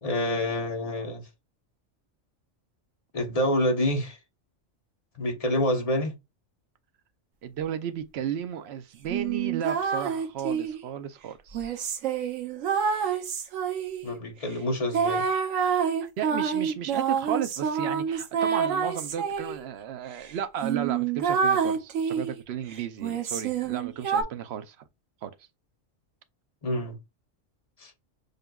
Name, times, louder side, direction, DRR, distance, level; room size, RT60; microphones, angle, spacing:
voice 1, 0.0-1.2 3.1-4.2 5.2-6.1 14.0-15.3 26.6-27.0 27.8-27.9, left 1 dB, 35° left, 0.8 m, -27 dB
voice 2, 7.4-11.8 16.0-24.8 25.2-25.3, right 9 dB, 65° right, 0.8 m, -34 dB
sound 1, 9.1-10.8 11.5-14.1 14.9-19.6 20.2-20.3 20.6-22.4 23.0-24.2, right 6 dB, 85° right, 1.1 m, -27 dB
6.6 x 2.4 x 2.2 m
omnidirectional pair, 1.3 m